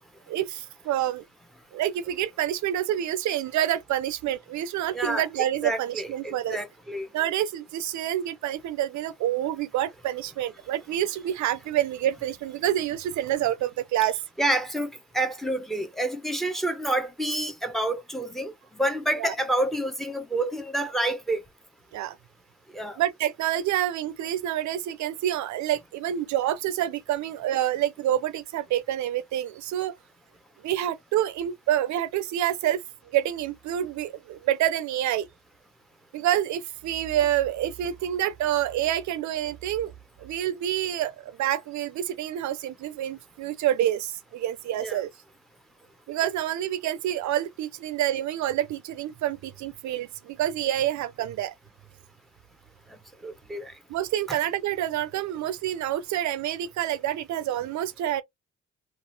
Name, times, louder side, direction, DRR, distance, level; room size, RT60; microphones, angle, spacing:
voice 1, 0.3-1.2 1.7-6.6 7.1-14.2 19.2-19.3 21.9-22.2 23.0-29.9 30.6-32.8 33.1-35.3 36.1-39.9 40.2-45.1 46.1-51.5 53.9-58.2, right 12 dB, 70° right, 0.4 m, -27 dB
voice 2, 4.9-5.2 5.6-7.1 14.4-21.4 22.7-23.0 44.8-45.0 53.2-53.7 54.3-54.4, right 1 dB, ahead, 0.6 m, -28 dB
2.8 x 2.4 x 2.6 m
cardioid pair, 90°, 30 cm